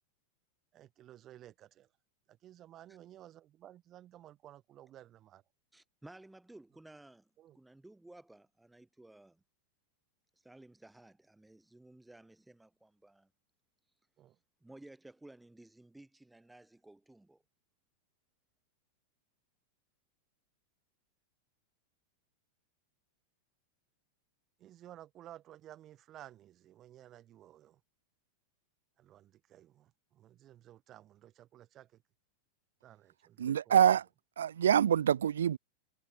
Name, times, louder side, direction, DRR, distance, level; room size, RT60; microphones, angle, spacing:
voice 1, 0.7-1.9 2.3-5.4 7.4-7.6 14.2-14.4 24.6-27.8 29.0-32.0 32.8-33.8, right 12 dB, 30° right, 5.5 m, -55 dB
voice 2, 5.7-7.3 7.5-9.4 10.4-13.3 14.6-17.4, right 2 dB, 5° right, 7.7 m, -56 dB
voice 3, 33.4-34.1 34.4-35.6, right 9 dB, 65° right, 0.5 m, -26 dB
figure-of-eight pair, 90°, 0 cm